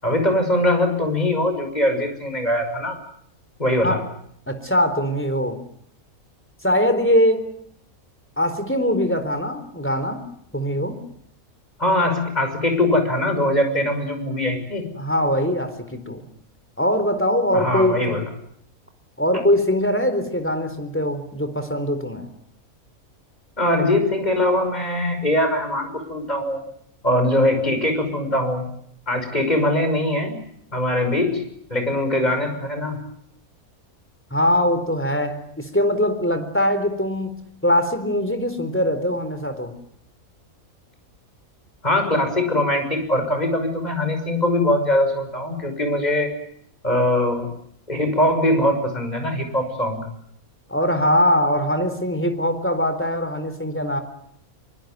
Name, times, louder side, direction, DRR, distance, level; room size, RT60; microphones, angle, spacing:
voice 1, 0.0-3.0 3.6-4.0 11.8-14.8 17.5-18.2 23.6-26.6 27.0-28.6 29.1-30.4 30.7-31.4 31.7-33.0 41.8-46.3 46.8-47.5 47.9-50.0, left 1 dB, 30° left, 6 dB, 6.3 m, -21 dB
voice 2, 4.5-5.6 6.6-7.5 8.4-10.2 10.5-11.0 15.0-16.2 16.8-18.2 19.2-22.3 34.3-37.4 37.6-39.7 50.7-54.0, left 1 dB, 10° left, 9 dB, 4.0 m, -22 dB
24.5 x 24.0 x 9.5 m, 0.69 s
omnidirectional pair, 1.5 m